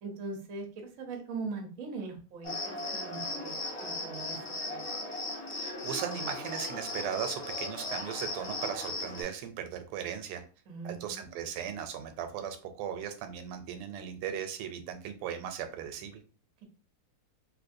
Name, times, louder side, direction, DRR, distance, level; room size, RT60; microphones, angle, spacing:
voice 1, 0.0-4.8 10.7-11.2, right 4 dB, 65° right, 2 dB, 0.8 m, -41 dB
Cricket, 2.4-9.2, left 2 dB, 30° left, 0.5 m, -37 dB
voice 2, 5.5-10.4 10.8-16.2, right 8 dB, 85° right, 8 dB, 1.5 m, -37 dB
3.2 x 2.8 x 2.6 m, 0.39 s
omnidirectional pair, 2.4 m